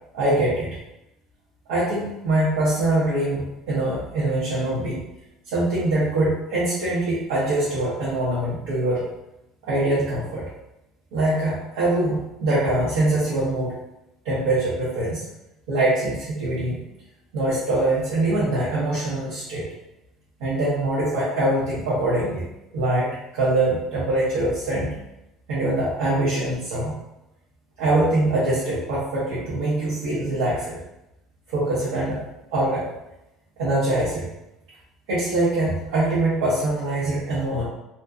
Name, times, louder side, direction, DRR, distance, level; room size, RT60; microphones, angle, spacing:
voice 1, 0.1-0.8 1.7-5.0 5.5-9.0 9.6-10.4 11.1-13.7 14.2-15.2 15.7-16.8 17.3-19.7 20.4-22.4 22.7-24.9 25.5-26.9 27.8-30.8 31.5-32.2 32.5-32.9 33.6-34.3 35.1-37.6, right 1 dB, 90° right, -9 dB, 0.7 m, -23 dB
2.5 x 2.1 x 2.4 m, 0.89 s
supercardioid pair, 100°, 0 cm